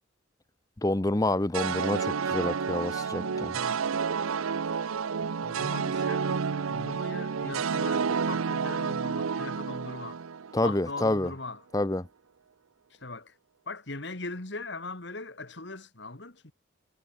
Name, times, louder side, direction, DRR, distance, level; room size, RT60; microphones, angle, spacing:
voice 1, 0.8-3.6 10.5-11.3 11.7-12.1, left 1 dB, 15° left, 0.7 m, -28 dB
sound 1, 1.5-10.9, right 6 dB, 90° right, 0.6 m, -30 dB
voice 2, 3.2-4.0 5.4-10.2 10.6-11.6 13.0-13.3 13.7-16.5, left 2 dB, 55° left, 2.2 m, -40 dB
head